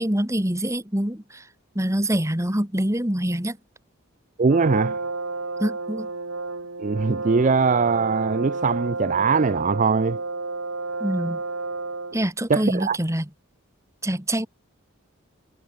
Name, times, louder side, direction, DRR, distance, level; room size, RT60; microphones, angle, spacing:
voice 1, 0.0-1.4 1.8-3.6 5.6-6.1 11.0-11.4 12.1-13.3 14.0-14.5, right 1 dB, 15° right, 2.0 m, -25 dB
voice 2, 4.4-5.0 6.8-10.2 12.5-13.0, right 4 dB, 35° right, 0.4 m, -21 dB
Brass instrument, 4.5-12.3, right 3 dB, 75° right, 3.7 m, -31 dB
head